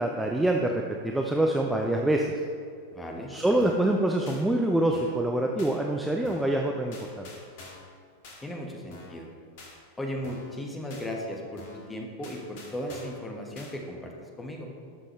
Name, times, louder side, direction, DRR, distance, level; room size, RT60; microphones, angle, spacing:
voice 1, 0.0-2.3 3.3-7.3, right 1 dB, 5° right, 1 dB, 0.6 m, -25 dB
voice 2, 2.9-3.3 8.4-9.3 10.0-14.7, equal, 10° left, 1 dB, 1.4 m, -36 dB
sound 1, 3.6-3.9 4.3-4.4 4.9-5.2 5.6-5.7 6.2-6.6 6.9-7.9 8.2-8.4 8.9-9.2 9.6-9.7 10.2-10.6 10.9-11.1 11.6-11.9 12.2-13.2 13.6-13.7, left 3 dB, 50° left, 1.7 m, -47 dB
12.0 x 6.4 x 3.2 m, 2.2 s
figure-of-eight pair, 90°, 0 cm